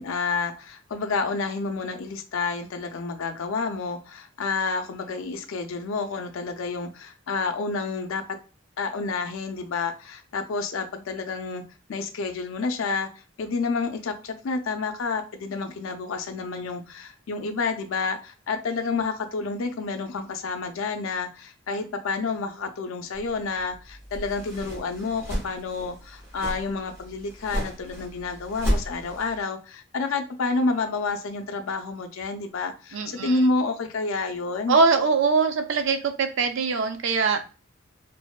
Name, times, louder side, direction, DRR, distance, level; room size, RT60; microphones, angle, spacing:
voice 1, 0.0-8.2 8.8-11.6 11.9-13.1 13.4-34.8, left 4 dB, 75° left, 6 dB, 0.4 m, -29 dB
sound 1, 23.1-29.4, equal, 10° right, 0.6 m, -33 dB
voice 2, 32.9-33.4 34.7-37.4, right 4 dB, 70° right, 7 dB, 0.4 m, -22 dB
2.6 x 2.1 x 2.2 m, 0.35 s
head